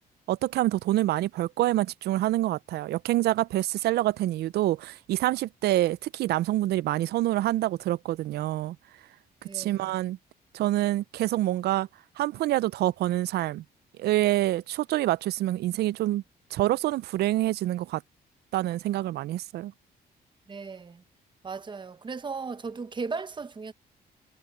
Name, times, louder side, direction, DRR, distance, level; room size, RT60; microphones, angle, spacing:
voice 1, 0.3-8.8 9.5-10.2 10.5-11.9 12.2-13.6 14.0-16.2 16.5-18.0 18.5-19.7, right 15 dB, 80° right, 0.4 m, -26 dB
voice 2, 9.4-9.9 20.5-21.0 21.4-23.7, right 4 dB, 30° right, 1.0 m, -36 dB
cardioid pair, 110°, 17 cm